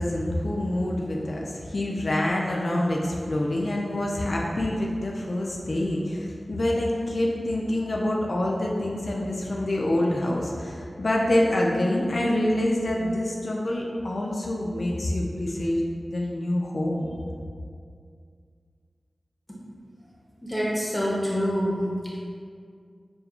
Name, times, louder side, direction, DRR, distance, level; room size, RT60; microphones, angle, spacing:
voice 1, 0.0-17.1, left 1 dB, 55° left, -2 dB, 0.4 m, -26 dB
voice 2, 20.4-21.9, equal, 20° left, -5 dB, 0.7 m, -26 dB
6.5 x 2.2 x 2.3 m, 2.2 s
wide cardioid pair, 65°, 0 cm